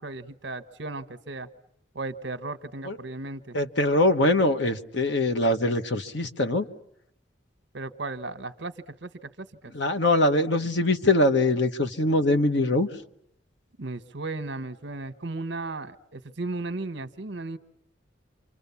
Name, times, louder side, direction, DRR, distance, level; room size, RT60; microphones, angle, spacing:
voice 1, 0.0-1.5 1.9-3.6 7.7-9.7 13.8-17.6, right 2 dB, 70° right, 11 dB, 1.2 m, -35 dB
voice 2, 3.5-6.7 9.7-12.9, left 2 dB, 70° left, 8 dB, 1.3 m, -23 dB
29.0 x 25.5 x 7.2 m, 0.74 s
head